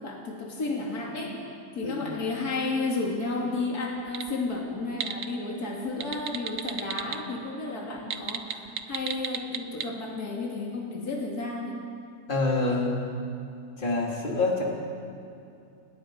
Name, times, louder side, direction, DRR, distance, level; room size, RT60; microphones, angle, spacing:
voice 1, 0.0-1.4 1.7-11.8, left 3 dB, 70° left, -2 dB, 3.2 m, -32 dB
sound 1, 4.0-4.3 4.7-5.2 5.9-7.1 8.0-9.8, right 7 dB, 55° right, 1.3 m, -31 dB
voice 2, 12.3-13.0 13.8-14.6, left 3 dB, 30° left, -3 dB, 3.5 m, -26 dB
30.0 x 19.5 x 5.1 m, 2.6 s
omnidirectional pair, 1.7 m